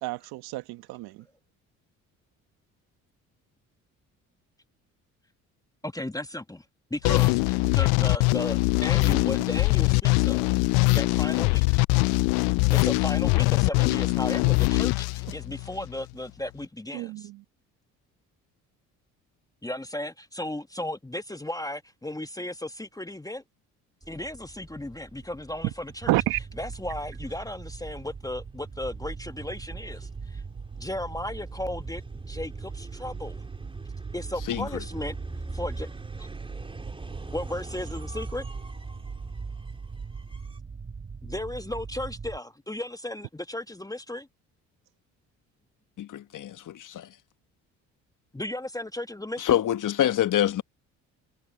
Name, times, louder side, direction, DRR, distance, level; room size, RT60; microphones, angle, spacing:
voice 1, 0.0-1.2 16.9-17.4 26.1-26.4, right 19 dB, 75° right, 1.5 m, -29 dB
voice 2, 5.8-6.6 6.9-10.5 10.9-11.8 12.7-17.3 19.6-23.4 24.1-26.1 26.6-30.4 30.8-32.0 32.3-33.4 34.1-35.2 35.5-35.9 36.2-36.3 37.3-38.4 41.2-44.2 48.3-49.6, left 1 dB, 10° left, 1.4 m, -35 dB
sound 1, 7.0-15.9, left 29 dB, 75° left, 0.5 m, -22 dB
sound 2, 24.0-40.6, right 2 dB, 15° right, 4.2 m, -44 dB
sound 3, 26.0-42.4, right 5 dB, 35° right, 6.1 m, -40 dB
voice 3, 46.0-47.1 49.4-50.6, left 11 dB, 55° left, 1.4 m, -26 dB
hypercardioid pair, 55°, 38 cm